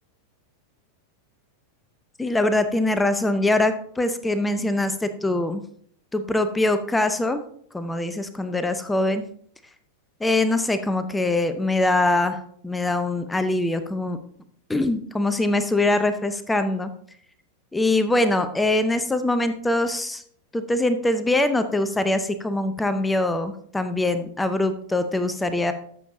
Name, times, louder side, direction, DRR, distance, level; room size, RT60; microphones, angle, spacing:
voice 1, 2.2-5.6 6.1-7.4 7.7-9.2 10.2-14.2 14.7-16.9 17.7-20.2 20.5-25.7, left 2 dB, 10° left, 10 dB, 0.7 m, -23 dB
13.5 x 7.1 x 2.7 m, 0.62 s
figure-of-eight pair, 90°, 0 cm